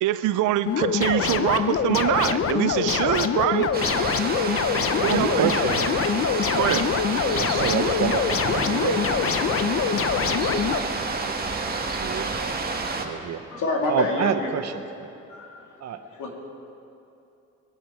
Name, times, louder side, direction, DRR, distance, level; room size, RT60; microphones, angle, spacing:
voice 1, 0.0-3.7 5.0-5.5 6.5-6.9, right 13 dB, 85° right, 14 dB, 0.6 m, -24 dB
sound 1, 0.7-10.8, left 7 dB, 45° left, 0.8 m, -24 dB
sound 2, 3.7-13.0, right 3 dB, 30° right, 1.7 m, -29 dB
voice 2, 5.0-5.9 7.3-9.0 11.8-12.6 12.8-13.4 13.9-15.1 15.8-16.0, right 7 dB, 60° right, 8 dB, 1.1 m, -28 dB
voice 3, 13.5-14.5 15.3-16.3, left 2 dB, 80° left, 0 dB, 2.7 m, -28 dB
22.0 x 10.0 x 4.6 m, 2.7 s
cardioid pair, 90°, 30 cm